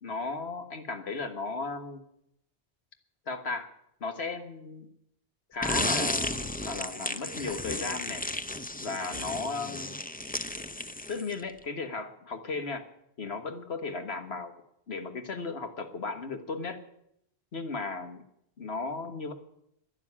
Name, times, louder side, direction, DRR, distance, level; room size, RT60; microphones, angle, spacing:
voice 1, 0.0-2.0 3.3-3.7 4.0-4.9 5.5-8.2 8.8-9.9 11.1-12.8 13.2-14.5 14.9-16.8 17.5-18.2 18.6-19.3, left 4 dB, 75° left, 6 dB, 1.7 m, -35 dB
sound 1, 5.6-11.5, left 1 dB, 15° left, 0.4 m, -33 dB
12.0 x 10.5 x 9.9 m, 0.76 s
omnidirectional pair, 1.1 m